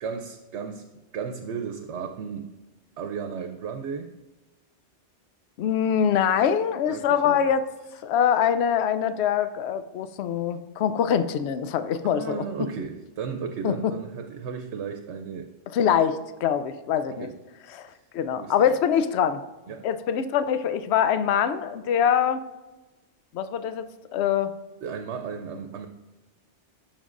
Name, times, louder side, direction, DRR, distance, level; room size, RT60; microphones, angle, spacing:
voice 1, 0.0-0.8 1.1-2.5 3.0-4.1 6.9-7.5 12.0-15.5 17.1-17.3 18.4-18.7 19.7-19.9 24.8-25.9, right 6 dB, 75° right, 5 dB, 0.9 m, -34 dB
voice 2, 5.6-7.7 8.0-12.4 13.6-13.9 15.7-17.3 17.7-17.9 18.1-19.4 19.8-22.4 23.3-23.9 24.1-24.5, left 8 dB, 70° left, 11 dB, 0.8 m, -24 dB
12.0 x 5.3 x 2.5 m, 1.1 s
omnidirectional pair, 1.2 m